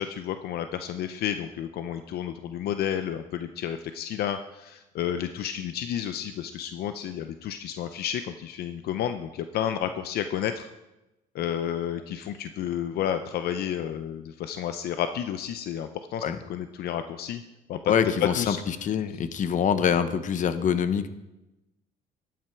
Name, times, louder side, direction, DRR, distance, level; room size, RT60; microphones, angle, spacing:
voice 1, 0.0-10.7 11.3-17.4 17.7-17.9 18.3-18.6, left 10 dB, 70° left, 9 dB, 0.6 m, -31 dB
voice 2, 17.9-18.5 18.8-21.1, left 7 dB, 50° left, 11 dB, 0.9 m, -25 dB
12.5 x 9.3 x 4.6 m, 0.98 s
cardioid pair, 110°, 17 cm